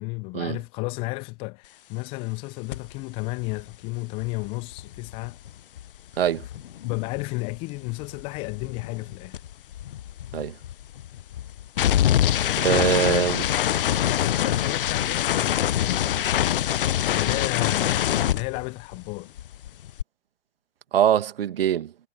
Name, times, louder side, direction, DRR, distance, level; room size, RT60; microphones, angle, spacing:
voice 1, 0.0-5.4 6.8-9.4 12.6-13.3 14.1-16.3 17.1-19.3, left 27 dB, 15° left, 0.5 m, -33 dB
sound 1, 2.7-2.9 3.2-7.6 7.8-19.1 19.4-20.0, left 11 dB, 50° left, 0.8 m, -25 dB
voice 2, 6.2-6.5 10.3-10.5 12.6-13.4 20.9-21.9, right 10 dB, 55° right, 1.8 m, -23 dB
figure-of-eight pair, 125°, 34 cm